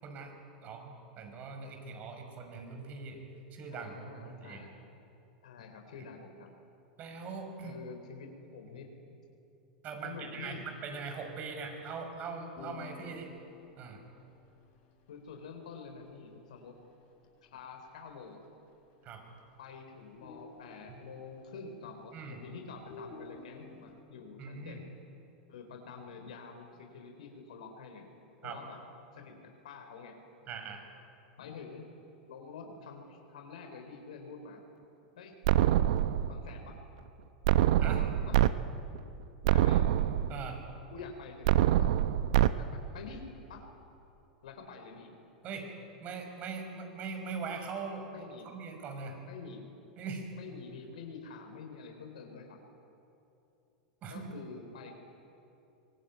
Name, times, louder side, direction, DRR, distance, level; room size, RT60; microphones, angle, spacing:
voice 1, 0.0-0.3 0.6-3.2 3.5-4.7 7.0-7.8 9.8-13.3 13.8-14.0 19.0-19.2 22.1-22.4 24.4-24.8 28.4-28.6 30.5-30.8 37.8-38.0 40.3-40.6 45.4-45.7 46.0-49.2 50.0-50.3 54.0-54.4, right 4 dB, 40° right, 4 dB, 5.9 m, -41 dB
voice 2, 3.7-4.9 5.4-6.5 7.6-9.2 10.0-10.7 15.1-16.8 17.4-18.4 19.6-24.9 25.5-28.1 28.4-28.8 29.1-30.2 31.4-32.0 32.3-34.6 35.2-35.3 36.3-36.8 37.8-38.4 39.5-39.9 40.9-41.9 42.6-43.6 44.4-45.2 48.1-48.5 49.3-49.6 50.4-52.6 54.1-54.9, left 5 dB, 70° left, 4 dB, 3.7 m, -47 dB
sound 1, 12.6-17.6 17.9-18.0 18.3-18.7 19.0-19.7 20.0-22.4 22.8-23.9, left 4 dB, 50° left, 5.2 m, -53 dB
sound 2, 35.4-36.5 37.4-38.5 38.9-39.0 39.4-40.5 41.4-42.5, right 12 dB, 60° right, 0.9 m, -25 dB
24.0 x 21.5 x 9.2 m, 2.8 s
hypercardioid pair, 95°, 4 cm